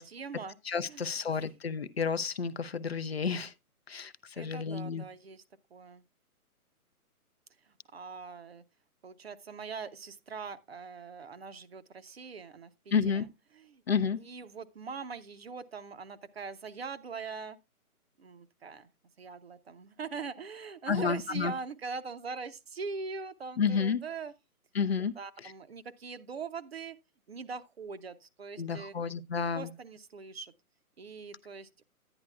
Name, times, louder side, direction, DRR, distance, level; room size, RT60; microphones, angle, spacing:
voice 1, 0.0-0.6 0.8-1.0 1.3-1.4 4.4-5.4 5.7-6.0 7.7-8.6 9.0-13.3 13.5-13.8 14.2-17.6 18.2-18.9 19.2-24.3 25.2-27.0 27.3-28.9 29.5-30.5 31.0-31.8, right 5 dB, 45° right, 0.7 m, -42 dB
voice 2, 0.7-3.5 3.9-5.0 12.9-13.3 13.9-14.2 20.9-21.5 23.6-24.0 24.7-25.1 28.6-29.7, left 6 dB, 45° left, 0.5 m, -30 dB
10.5 x 9.8 x 2.3 m
hypercardioid pair, 170°, 45 cm